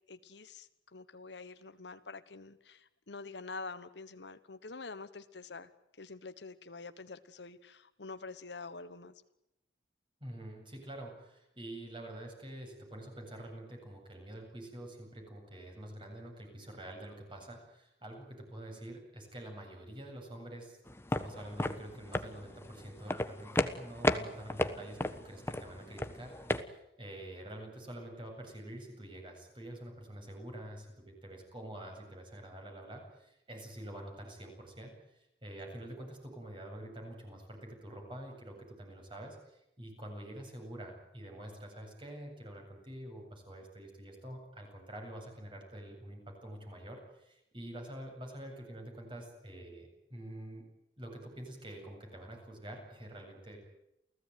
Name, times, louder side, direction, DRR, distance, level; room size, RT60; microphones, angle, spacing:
voice 1, 0.1-5.7 6.0-9.1, left 3 dB, 75° left, 11 dB, 1.3 m, -46 dB
voice 2, 10.2-20.8 21.1-50.6 51.0-53.6, right 1 dB, 30° right, 2 dB, 7.9 m, -47 dB
sound 1, 20.9-26.6, left 1 dB, 15° left, 1.3 m, -34 dB
29.0 x 16.5 x 9.4 m, 0.85 s
head